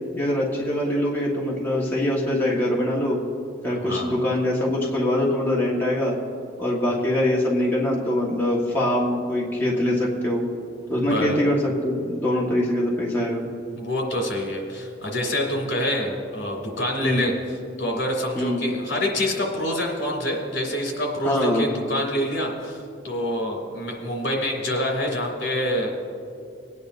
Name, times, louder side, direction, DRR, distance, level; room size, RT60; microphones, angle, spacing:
voice 1, 0.1-3.2 3.6-6.2 6.6-10.4 10.9-13.4 17.0-17.3 18.3-18.6 21.2-21.6, left 1 dB, 10° left, -5 dB, 1.5 m, -23 dB
voice 2, 3.8-4.2 11.0-11.4 13.8-17.3 17.8-22.8 23.0-25.9, left 1 dB, 65° left, 0 dB, 2.7 m, -26 dB
20.5 x 9.6 x 2.6 m, 2.5 s
head